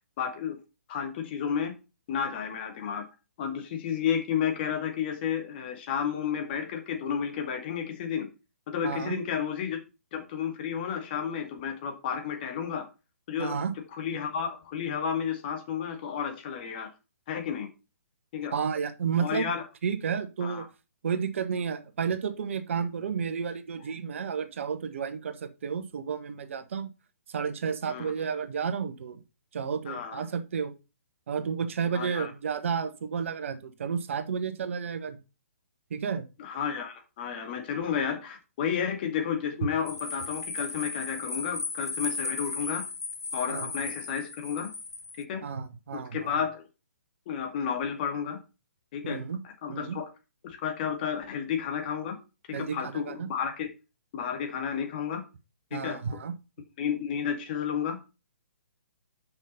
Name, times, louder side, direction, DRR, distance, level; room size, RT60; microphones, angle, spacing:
voice 1, 0.2-0.6 0.9-1.8 2.1-3.0 3.4-8.3 8.7-9.8 10.1-12.9 13.3-13.6 14.0-16.9 17.3-17.7 18.3-18.6 19.2-19.7 20.4-20.6 27.9-28.1 29.9-30.3 31.9-32.3 36.4-42.8 43.3-44.7 45.2-45.4 45.9-46.6 47.3-48.4 48.9-49.2 49.4-50.1 50.4-52.2 52.6-53.7 54.1-55.2 55.7-56.0 56.8-58.0, left 7 dB, 40° left, 5 dB, 2.1 m, -32 dB
voice 2, 8.8-9.2 13.4-13.7 18.5-19.5 19.8-20.7 21.0-26.9 27.3-29.2 29.5-30.7 31.3-35.2 35.9-36.3 43.5-43.7 45.4-46.3 49.0-49.4 49.7-50.0 52.5-53.3 55.7-56.3, right 6 dB, 55° right, 10 dB, 1.1 m, -31 dB
sound 1, 39.9-45.2, left 4 dB, 85° left, 0.5 m, -36 dB
6.1 x 5.7 x 5.4 m, 0.29 s
figure-of-eight pair, 135°, 8 cm